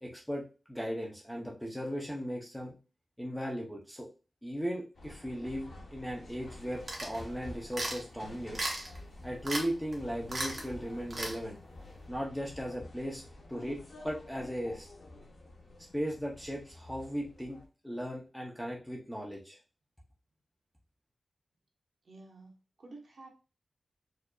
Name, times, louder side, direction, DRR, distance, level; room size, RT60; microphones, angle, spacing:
voice 1, 0.0-2.8 3.2-4.1 4.4-8.6 9.2-11.6 12.1-13.2 13.5-14.9 15.9-17.6 17.8-19.6, equal, 5° left, -2 dB, 0.7 m, -37 dB
sound 1, 4.9-17.7, left 2 dB, 75° left, 1.0 m, -49 dB
sound 2, 6.9-7.2 7.7-8.0 8.5-9.0 9.4-9.7 9.9-10.0 10.3-10.6 11.1-11.4, right 2 dB, 40° right, 1.0 m, -35 dB
voice 2, 22.0-23.3, right 2 dB, 60° right, -1 dB, 1.2 m, -51 dB
4.6 x 2.7 x 2.3 m, 0.33 s
wide cardioid pair, 135°, 0 cm